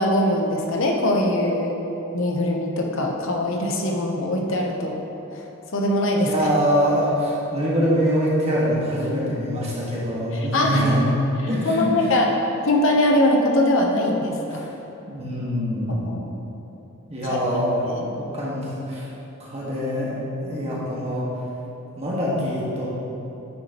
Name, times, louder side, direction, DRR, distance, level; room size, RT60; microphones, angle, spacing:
voice 1, 0.0-1.8 2.1-5.0 5.7-6.5 10.3-10.9 11.6-12.3 12.7-14.6 15.9-16.3 17.2-17.4 17.9-18.1, left 1 dB, 65° left, 0 dB, 0.8 m, -22 dB
voice 2, 6.3-11.1 11.4-12.1 14.5-14.7 15.0-16.1 17.1-17.8 18.3-19.1 19.4-21.2 22.0-22.9, equal, 30° right, -6 dB, 1.6 m, -24 dB
9.6 x 6.1 x 2.9 m, 3.0 s
head